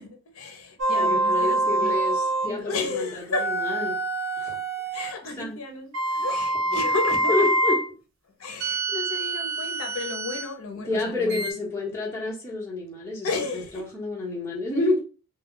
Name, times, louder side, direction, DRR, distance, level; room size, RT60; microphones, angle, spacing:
voice 1, 0.0-1.9 2.4-3.5 4.9-7.5 8.4-11.5 13.2-13.8, left 3 dB, 70° left, 0.6 m, -33 dB
sound 1, 0.8-2.6 3.3-5.2 5.9-7.9 8.6-10.5 11.3-11.5, right 2 dB, 60° right, 0.6 m, -25 dB
voice 2, 1.0-4.0 4.4-4.6 5.4-5.5 7.3-7.8 10.8-13.3 13.7-15.0, left 2 dB, 10° left, 1.0 m, -28 dB
2.3 x 2.2 x 3.7 m
head